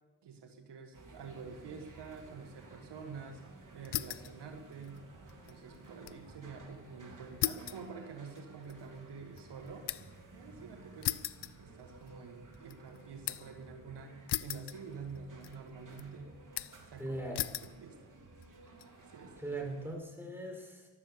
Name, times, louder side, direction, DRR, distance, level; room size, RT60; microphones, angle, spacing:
voice 1, 0.2-3.4 3.7-5.0 5.5-9.9 10.3-11.2 11.6-16.3 16.8-18.1 19.1-19.3, right 5 dB, 75° right, 5 dB, 1.7 m, -48 dB
sound 1, 0.9-19.9, right 3 dB, 50° right, 3.7 m, -55 dB
sound 2, 3.8-4.4 4.7-6.2 6.6-6.7 7.4-10.2 11.0-12.2 12.5-13.6 14.3-15.2 15.4-16.0 16.6-16.9 17.3-17.8 18.4-18.9, left 13 dB, 70° left, 0.7 m, -38 dB
voice 2, 17.0-17.5 19.4-20.9, right 2 dB, 5° right, 0 dB, 6.5 m, -40 dB
13.5 x 12.5 x 6.9 m, 1.1 s
supercardioid pair, 45°, 41 cm